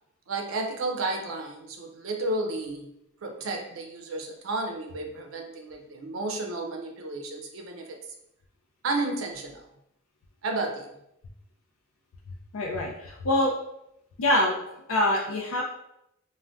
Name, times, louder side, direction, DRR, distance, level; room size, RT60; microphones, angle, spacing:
voice 1, 0.3-2.9 3.2-8.0 8.8-9.7 10.4-11.0, right 2 dB, 80° right, 2 dB, 0.5 m, -32 dB
voice 2, 12.5-13.5 14.2-14.6 14.9-15.6, left 1 dB, 80° left, -1 dB, 0.4 m, -24 dB
3.4 x 2.1 x 2.5 m, 0.79 s
head